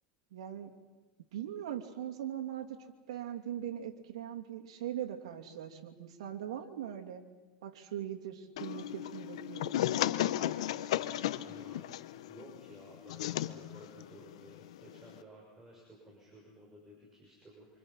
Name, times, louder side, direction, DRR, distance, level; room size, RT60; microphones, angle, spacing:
voice 1, 0.3-0.7 1.3-2.8 3.1-7.2 7.6-9.7, right 10 dB, 85° right, 2 dB, 2.9 m, -40 dB
sound 1, 8.6-15.2, left 13 dB, 85° left, 1.0 m, -35 dB
voice 2, 11.4-17.8, right 1 dB, 15° right, -2 dB, 6.6 m, -55 dB
27.0 x 25.5 x 5.8 m, 1.2 s
supercardioid pair, 120°, 3 cm